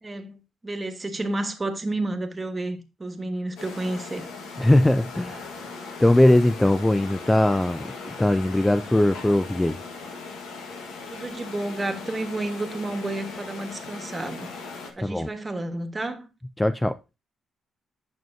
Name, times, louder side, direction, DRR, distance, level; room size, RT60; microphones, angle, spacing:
voice 1, 0.0-4.3 11.1-14.5 15.0-16.3, right 2 dB, 20° right, 1.3 m, -31 dB
sound 1, 3.6-14.9, left 4 dB, 85° left, 1.4 m, -39 dB
voice 2, 4.6-5.5 6.0-7.9 8.2-9.8 15.0-15.3 16.6-17.0, left 1 dB, 10° left, 0.3 m, -20 dB
9.2 x 6.2 x 2.7 m
cardioid pair, 90°, 0 cm